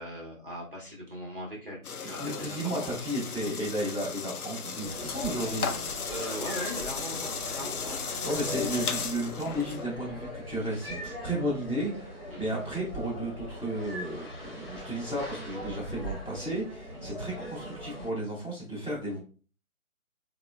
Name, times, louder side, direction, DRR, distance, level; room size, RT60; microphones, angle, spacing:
voice 1, 0.0-2.7 6.1-8.3 12.3-12.5 16.9-17.1, equal, 40° right, -4 dB, 0.7 m, -40 dB
sound 1, 1.8-9.8, left 5 dB, 85° left, 0.6 m, -36 dB
voice 2, 2.2-5.7 8.2-19.2, right 1 dB, 5° left, -21 dB, 0.9 m, -33 dB
sound 2, 4.8-18.1, equal, 40° left, 1.1 m, -40 dB
3.0 x 2.1 x 2.2 m, 0.38 s
figure-of-eight pair, 155°, 43 cm